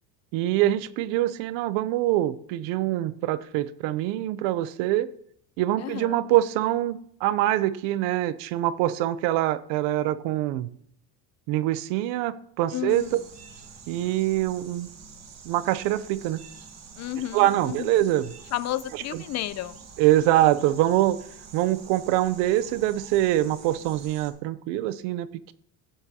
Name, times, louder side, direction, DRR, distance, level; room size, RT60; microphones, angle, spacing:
voice 1, 0.3-5.1 5.6-10.7 11.5-13.2 13.9-14.9 15.5-16.4 17.3-18.3 20.0-21.2 21.5-25.3, right 14 dB, 80° right, 16 dB, 0.7 m, -24 dB
voice 2, 5.8-6.2 12.7-13.2 17.0-18.0 18.5-19.8, left 13 dB, 40° left, 16 dB, 0.5 m, -32 dB
sound 1, 12.9-24.3, right 5 dB, 40° right, 1.5 m, -47 dB
13.5 x 9.1 x 2.8 m, 0.67 s
cardioid pair, 120°, 43 cm